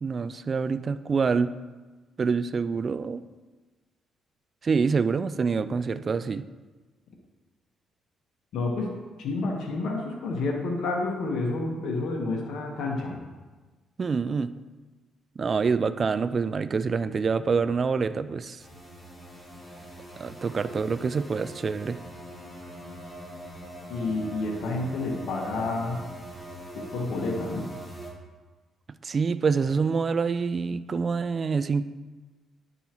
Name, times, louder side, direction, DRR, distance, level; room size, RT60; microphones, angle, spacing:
voice 1, 0.0-1.6 2.2-3.2 4.6-6.5 14.0-14.5 15.4-18.6 20.2-22.0 29.0-31.8, right 5 dB, 40° right, 13 dB, 0.3 m, -26 dB
voice 2, 8.5-8.9 9.2-13.3 23.9-26.0 26.7-27.7, left 3 dB, 75° left, -1 dB, 1.2 m, -29 dB
sound 1, 18.6-28.1, right 1 dB, 5° left, 1.5 m, -42 dB
9.8 x 5.4 x 3.0 m, 1.3 s
cardioid pair, 90°, 0 cm